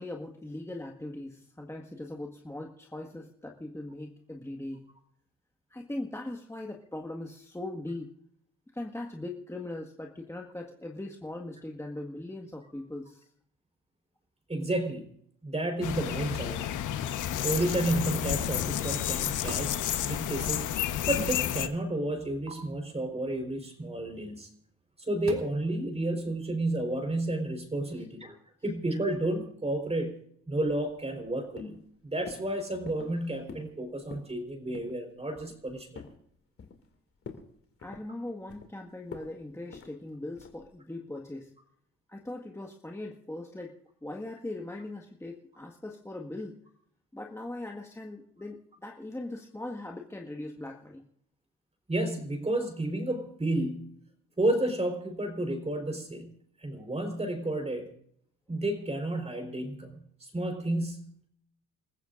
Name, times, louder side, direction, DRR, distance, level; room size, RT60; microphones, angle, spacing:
voice 1, 0.0-4.9 5.7-8.2 8.7-13.3 27.9-28.0 37.8-41.5 42.1-46.6 47.1-51.0, left 2 dB, 10° left, 1 dB, 1.8 m, -40 dB
voice 2, 14.5-15.1 15.4-16.7 17.4-19.8 20.0-20.7 21.1-24.5 25.0-28.4 28.6-30.2 30.5-31.8 32.0-36.0 51.9-54.0 54.4-56.3 56.6-57.9 58.5-61.3, right 1 dB, 20° right, 5 dB, 4.5 m, -31 dB
sound 1, 15.8-21.7, left 11 dB, 80° left, 1.2 m, -31 dB
sound 2, 19.5-19.8 20.1-20.8 21.1-21.6 21.9-22.5 24.3-24.5 24.9-25.4, right 4 dB, 60° right, 3.6 m, -45 dB
sound 3, 30.6-31.3 31.6-31.9 32.3-32.5 32.9-33.2 33.5-33.7 34.0-34.3 34.7-35.0 35.3-36.2 36.6-36.9 37.2-37.5 37.8-38.7 39.1-39.3 39.7-39.9 40.4-40.7, left 5 dB, 45° left, 2.8 m, -46 dB
29.5 x 14.5 x 2.6 m, 0.68 s
cardioid pair, 90°, 30 cm